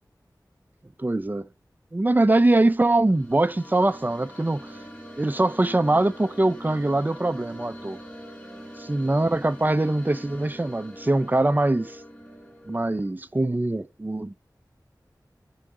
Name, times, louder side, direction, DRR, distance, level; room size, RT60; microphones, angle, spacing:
voice 1, 1.0-1.5 1.9-4.8 5.2-8.0 8.9-12.0 12.7-14.3, right 2 dB, 25° right, 0.6 m, -23 dB
sound 1, 2.9-13.1, equal, 20° left, 4.9 m, -43 dB
11.0 x 4.9 x 7.9 m
wide cardioid pair, 50°, 7 cm